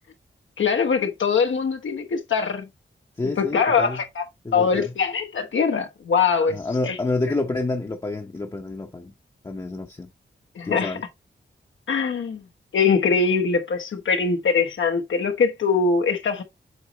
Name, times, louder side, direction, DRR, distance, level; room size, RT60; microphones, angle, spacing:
voice 1, 0.6-2.7 3.4-4.2 4.5-6.6 6.9-7.0 10.6-11.0 11.9-12.4 12.7-16.4, left 5 dB, 85° left, 1.1 m, -22 dB
voice 2, 3.2-4.0 4.4-4.9 6.5-9.1 9.4-10.1 10.6-11.0, left 2 dB, 20° left, 0.7 m, -28 dB
8.0 x 4.1 x 2.9 m
wide cardioid pair, 145°, 19 cm